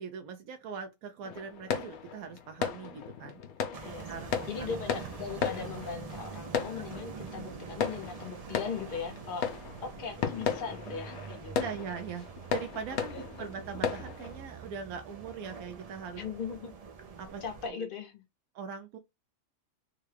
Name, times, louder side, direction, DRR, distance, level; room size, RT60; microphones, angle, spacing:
voice 1, 0.0-3.7 4.1-4.3 4.6-4.7 6.7-6.8 11.5-16.2 17.2-17.4 17.8-17.9 18.5-19.0, right 6 dB, 85° right, 1.1 m, -41 dB
sound 1, 1.2-14.4, left 7 dB, 90° left, 1.1 m, -36 dB
sound 2, 3.7-17.7, right 6 dB, 65° right, 0.3 m, -45 dB
voice 2, 3.8-9.5 9.8-11.6 13.1-13.6 16.2-16.8 17.4-18.2, left 6 dB, 45° left, 0.9 m, -39 dB
3.6 x 2.2 x 3.3 m
omnidirectional pair, 1.5 m